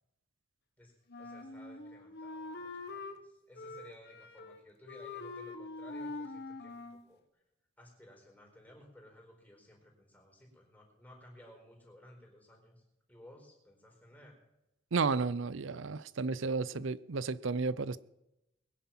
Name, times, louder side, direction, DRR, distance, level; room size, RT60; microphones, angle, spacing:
Wind instrument woodwind instrument, 1.1-3.2 3.6-4.6 4.9-7.1, left 3 dB, 55° left, 1.3 m, -44 dB
voice 1, 1.2-7.4 7.8-12.8 13.1-14.4, equal, 10° left, 4.5 m, -57 dB
voice 2, 14.9-18.0, right 4 dB, 65° right, 0.6 m, -32 dB
21.5 x 10.0 x 5.9 m
head